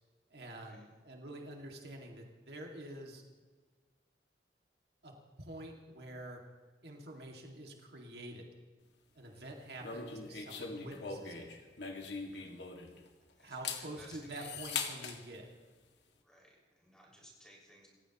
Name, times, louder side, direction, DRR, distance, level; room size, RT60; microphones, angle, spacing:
voice 1, 0.3-3.2 5.0-6.4 6.8-8.5 9.1-11.5 13.4-15.5, right 1 dB, 65° right, 0 dB, 2.2 m, -47 dB
sound 1, 9.8-13.1 13.5-15.2, left 5 dB, 75° left, 2.1 m, -41 dB
voice 2, 10.5-11.1 12.3-12.5 13.3-14.5 16.2-17.9, equal, 5° left, -4 dB, 5.6 m, -60 dB
28.5 x 15.5 x 3.0 m, 1.4 s
head